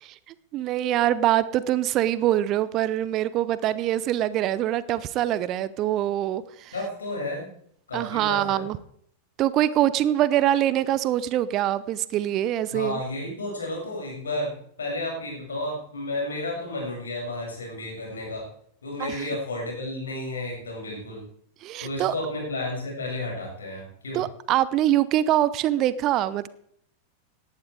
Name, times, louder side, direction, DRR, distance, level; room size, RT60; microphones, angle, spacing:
voice 1, 0.5-6.7 7.9-8.8 9.4-13.0 19.0-19.2 21.6-22.1 24.1-26.5, right 12 dB, 35° right, 17 dB, 0.7 m, -24 dB
voice 2, 6.7-7.5 7.9-8.6 12.7-18.5 18.8-21.2 21.8-24.2, left 2 dB, 70° left, -1 dB, 7.2 m, -32 dB
18.0 x 11.5 x 4.8 m, 0.66 s
figure-of-eight pair, 90°, 0 cm